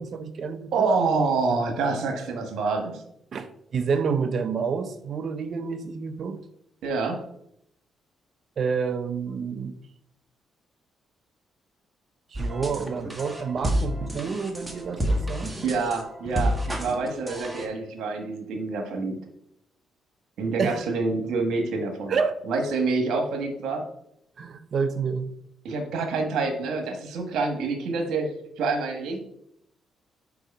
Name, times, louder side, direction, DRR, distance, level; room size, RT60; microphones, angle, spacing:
voice 1, 0.0-0.9 3.3-6.4 8.6-9.8 12.3-15.5 20.6-20.8 22.1-22.4 24.4-25.3, right 5 dB, 55° right, 10 dB, 0.7 m, -29 dB
voice 2, 0.7-3.0 6.8-7.2 15.6-19.2 20.4-22.1 22.5-23.8 25.6-29.2, right 4 dB, 80° right, 5 dB, 1.3 m, -27 dB
sound 1, 12.3-17.7, equal, 10° right, 1.3 m, -29 dB
4.9 x 4.8 x 5.3 m, 0.75 s
cardioid pair, 90°, 0 cm